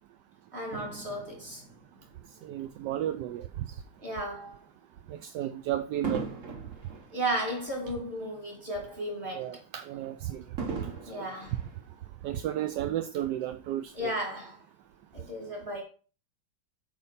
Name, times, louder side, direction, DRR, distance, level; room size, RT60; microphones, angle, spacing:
voice 1, 0.5-1.6 4.0-4.6 7.1-9.5 11.1-11.5 13.9-14.6 15.1-15.8, right 1 dB, 25° right, 3.1 m, -34 dB
Fireworks, 0.7-3.3 3.9-4.2 6.0-8.5 8.9-9.0 10.6-12.5 13.2-13.3, right 4 dB, 45° right, 1.5 m, -41 dB
voice 2, 2.4-3.8 5.1-6.2 9.3-10.4 11.2-11.3 12.2-14.1, right 12 dB, 75° right, 1.0 m, -33 dB
8.6 x 4.3 x 5.6 m
omnidirectional pair, 2.2 m